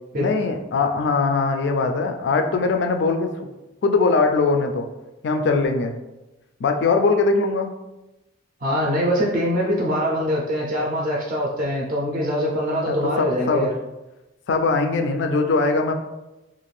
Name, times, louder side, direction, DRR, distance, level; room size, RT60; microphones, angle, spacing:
voice 1, 0.1-3.3 3.8-4.9 5.2-5.9 6.6-7.7 12.9-13.7 14.5-15.9, left 4 dB, 60° left, 5 dB, 0.3 m, -21 dB
voice 2, 8.6-13.7, equal, 40° right, -3 dB, 0.4 m, -23 dB
2.5 x 2.4 x 3.1 m, 1.0 s
head